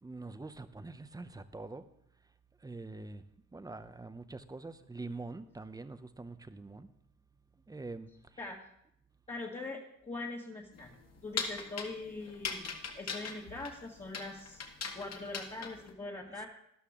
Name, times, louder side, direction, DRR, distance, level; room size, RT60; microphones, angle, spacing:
voice 1, 0.0-1.8 2.6-3.2 3.5-6.9 7.7-8.1, right 3 dB, 10° right, 11 dB, 0.6 m, -44 dB
voice 2, 9.3-11.0 11.2-14.6 14.9-16.5, left 2 dB, 20° left, -4 dB, 1.7 m, -42 dB
sound 1, 10.7-15.9, left 5 dB, 55° left, 1.9 m, -40 dB
13.0 x 11.5 x 3.7 m, 0.74 s
cardioid pair, 115°, 31 cm